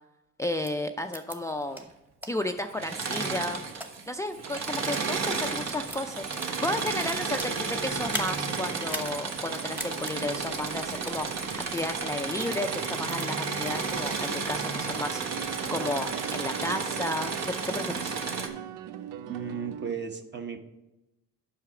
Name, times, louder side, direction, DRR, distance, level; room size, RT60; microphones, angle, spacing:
voice 1, 0.4-1.9 2.3-3.6 4.1-15.2 15.7-18.2, left 1 dB, 10° left, 6 dB, 0.4 m, -33 dB
sound 1, 0.6-0.7 1.1-1.4 1.7-1.8 2.2-2.3 2.9-3.9 4.4-4.6 5.2-5.6 5.8-7.6 8.0-8.3 8.8-9.1 9.4-9.5 9.8-10.1 10.9-11.2 11.7-11.8 12.4-12.6 13.1-13.2 13.6-13.7 14.2-14.7 15.0-15.6, equal, 5° right, 1.1 m, -39 dB
Engine / Mechanisms, 2.7-4.0 4.3-18.5, right 4 dB, 60° right, 1.2 m, -32 dB
sound 2, 6.9-19.9, right 10 dB, 90° right, 0.5 m, -42 dB
voice 2, 19.3-20.6, right 6 dB, 35° right, 6 dB, 1.1 m, -35 dB
8.0 x 5.7 x 4.9 m, 0.94 s
cardioid pair, 90°, 30 cm